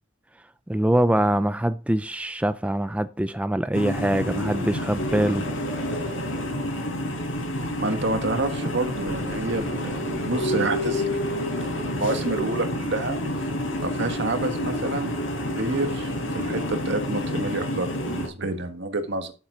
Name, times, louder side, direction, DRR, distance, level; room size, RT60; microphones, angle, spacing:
voice 1, 0.7-5.4, right 1 dB, 5° right, 0.4 m, -23 dB
sound 1, 3.7-18.3, left 1 dB, 85° left, 4.9 m, -29 dB
voice 2, 7.8-13.2 13.8-15.1 15.4-19.3, right 2 dB, 65° right, 1.7 m, -29 dB
12.5 x 7.4 x 3.9 m
head